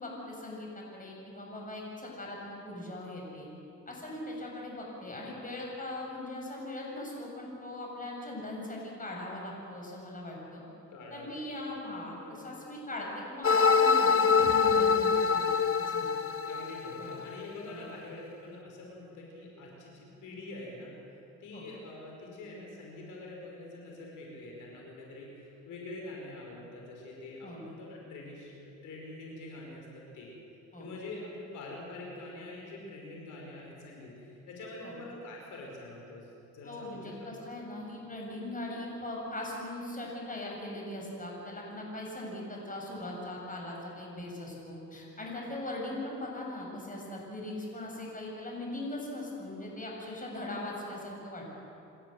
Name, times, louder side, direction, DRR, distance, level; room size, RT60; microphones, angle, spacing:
voice 1, 0.0-3.5 3.9-10.6 11.1-16.1 17.0-17.2 17.7-17.9 21.5-21.6 27.4-27.6 30.7-30.9 34.8-34.9 36.6-51.4, left 1 dB, 25° left, -2 dB, 7.0 m, -40 dB
voice 2, 10.9-11.8 12.2-12.4 16.5-20.9 21.4-30.3 30.8-37.3, left 2 dB, 80° left, -1 dB, 5.2 m, -45 dB
sound 1, 13.4-17.4, left 5 dB, 45° left, 1.1 m, -25 dB
28.0 x 13.5 x 7.9 m, 2.8 s
cardioid pair, 90°, 30 cm